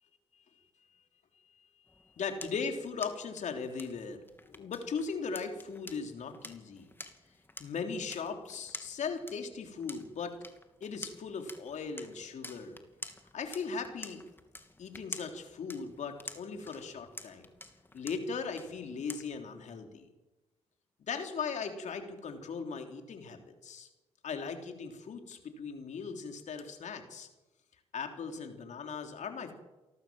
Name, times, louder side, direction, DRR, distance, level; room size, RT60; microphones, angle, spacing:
sound 1, 1.9-19.6, left 2 dB, 15° left, 2.9 m, -50 dB
voice 1, 2.2-6.9 7.6-10.4 10.8-12.8 13.3-14.2 14.8-17.5 17.9-20.0 21.0-23.9 24.2-27.3 27.9-29.5, left 5 dB, 65° left, 5 dB, 3.5 m, -38 dB
28.0 x 12.0 x 7.7 m, 1.1 s
hypercardioid pair, 45°, 13 cm